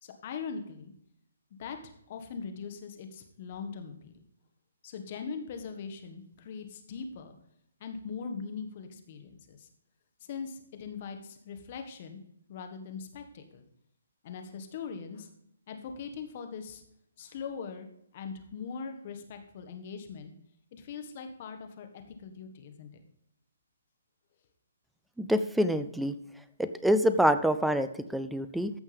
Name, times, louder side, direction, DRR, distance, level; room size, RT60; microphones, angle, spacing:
voice 1, 0.0-0.9 1.6-4.2 4.8-7.3 7.8-9.7 10.2-12.2 12.5-13.6 14.2-15.3 15.7-16.8 17.2-17.9 18.1-20.3 20.7-23.0, left 5 dB, 45° left, 6 dB, 1.6 m, -41 dB
voice 2, 25.2-26.1 26.6-28.7, equal, ahead, 11 dB, 0.5 m, -26 dB
14.5 x 6.3 x 3.5 m, 0.73 s
hypercardioid pair, 140°, 0 cm